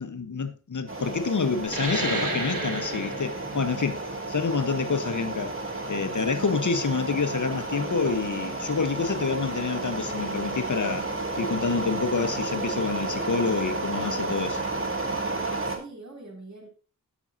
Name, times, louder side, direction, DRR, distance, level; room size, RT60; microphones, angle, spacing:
voice 1, 0.0-4.0 4.3-5.5 5.9-11.1 11.4-14.6, left 5 dB, 65° left, 1.1 m, -27 dB
sound 1, 0.9-15.8, right 2 dB, 40° right, 2.3 m, -32 dB
sound 2, 1.6-6.8, right 2 dB, 85° right, 2.7 m, -33 dB
voice 2, 6.2-6.5 15.6-16.7, right 2 dB, 60° right, 3.4 m, -44 dB
18.5 x 6.2 x 2.7 m
wide cardioid pair, 80°, 32 cm